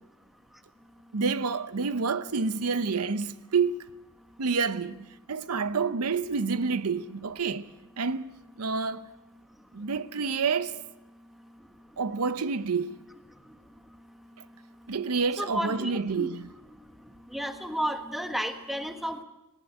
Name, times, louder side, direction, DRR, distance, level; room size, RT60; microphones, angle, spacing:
voice 1, 1.1-3.7 4.4-8.3 8.6-9.1 9.7-10.8 12.0-13.0 14.9-16.5, right 5 dB, 80° right, 0.8 m, -28 dB
voice 2, 15.4-16.3 17.3-19.2, equal, ahead, 1.4 m, -32 dB
18.5 x 18.5 x 9.1 m
head